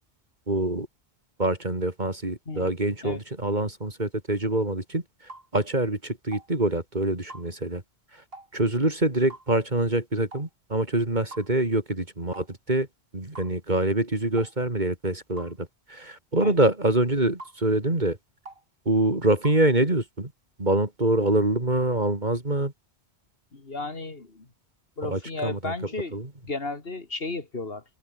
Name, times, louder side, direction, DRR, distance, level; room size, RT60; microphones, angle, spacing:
voice 1, 0.5-0.9 1.4-5.0 5.5-7.8 8.5-12.9 13.1-15.6 15.9-18.2 18.9-20.3 20.6-22.7 25.1-25.7 26.1-26.3, right 2 dB, 40° right, 3.7 m, -25 dB
sound 1, 5.3-5.5 6.3-6.5 7.3-7.5 8.3-8.5 9.3-9.5 10.3-10.5 11.3-11.5 12.3-12.5 13.3-13.5 14.4-14.5 15.4-15.5 16.4-16.6 17.4-17.6 18.5-18.6 19.4-19.6, right 2 dB, 60° right, 4.2 m, -43 dB
voice 2, 23.5-24.5 25.0-26.2 26.4-27.8, left 3 dB, 60° left, 2.7 m, -33 dB
omnidirectional pair, 1.1 m